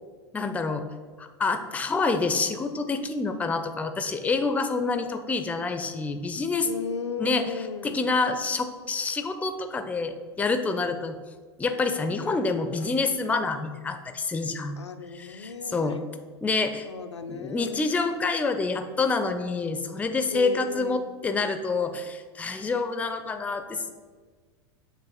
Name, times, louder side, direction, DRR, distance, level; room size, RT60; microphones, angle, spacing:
voice 1, 0.3-0.8 1.2-6.7 7.2-11.2 11.6-14.8 15.1-16.0 16.4-16.9 17.3-23.9, left 3 dB, 10° left, 8 dB, 0.4 m, -27 dB
voice 2, 6.6-8.1 14.8-16.0 16.9-17.8 20.3-21.1, left 5 dB, 85° left, 6 dB, 0.5 m, -35 dB
7.3 x 2.9 x 5.3 m, 1.5 s
figure-of-eight pair, 90°, 14 cm